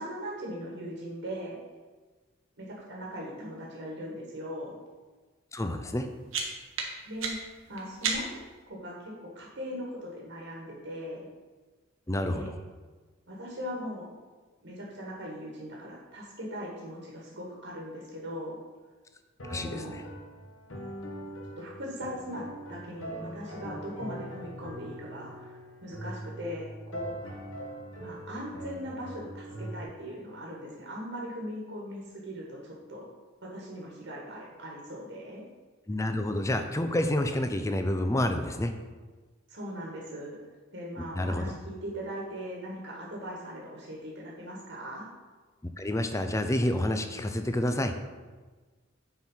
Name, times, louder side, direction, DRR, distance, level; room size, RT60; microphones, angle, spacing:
voice 1, 0.0-1.6 2.6-4.8 7.1-7.4 7.7-8.3 8.7-11.3 12.2-12.5 13.3-14.1 14.6-18.6 19.5-20.0 21.2-27.3 28.0-33.1 33.4-35.4 39.5-40.4 40.7-45.1, equal, 65° right, -3 dB, 1.7 m, -39 dB
voice 2, 5.5-6.1 12.1-12.5 19.5-20.0 35.9-38.7 41.1-41.5 45.8-47.9, left 1 dB, 15° left, 7 dB, 0.5 m, -29 dB
sound 1, 5.9-8.6, right 4 dB, 90° right, 1.3 m, -35 dB
sound 2, 19.4-29.8, right 1 dB, 85° left, 1.5 m, -42 dB
7.6 x 4.6 x 5.7 m, 1.3 s
head